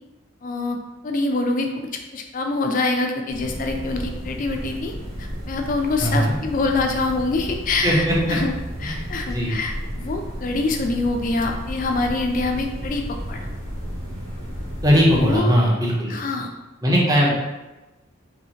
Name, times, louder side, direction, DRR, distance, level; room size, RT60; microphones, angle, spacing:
voice 1, 0.4-0.8 1.0-1.9 2.1-4.9 5.2-8.5 8.8-13.0 13.3-13.5 15.2-15.5 16.1-16.5 17.3-17.4, left 3 dB, 40° left, 3 dB, 0.3 m, -25 dB
sound 1, 3.3-15.4, equal, 70° right, 1.0 m, -33 dB
voice 2, 6.0-6.3 7.8-8.4 8.8-9.0 9.2-9.5 14.8-16.1 16.8-17.3, equal, 15° right, -4 dB, 0.6 m, -19 dB
2.8 x 2.7 x 2.8 m, 1.1 s
head